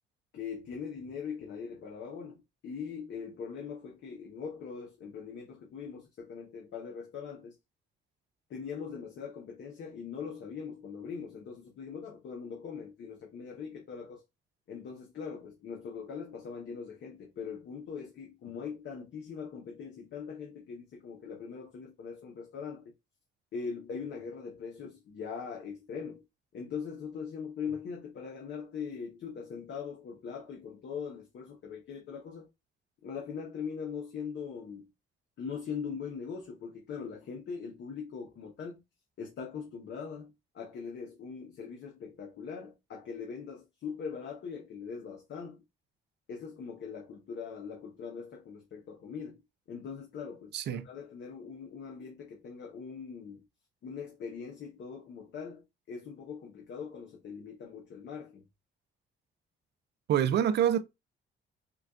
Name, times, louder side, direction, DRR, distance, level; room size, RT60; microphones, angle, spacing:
voice 1, 0.3-7.6 8.5-14.2 14.7-22.9 23.5-26.2 26.5-32.5 33.0-34.9 35.4-38.8 39.2-45.6 46.3-49.4 49.7-53.4 53.8-58.5, left 6 dB, 65° left, 0.9 m, -41 dB
voice 2, 50.5-50.9 60.1-60.8, right 9 dB, 60° right, 0.4 m, -26 dB
5.7 x 2.3 x 2.3 m
cardioid pair, 90°, 20 cm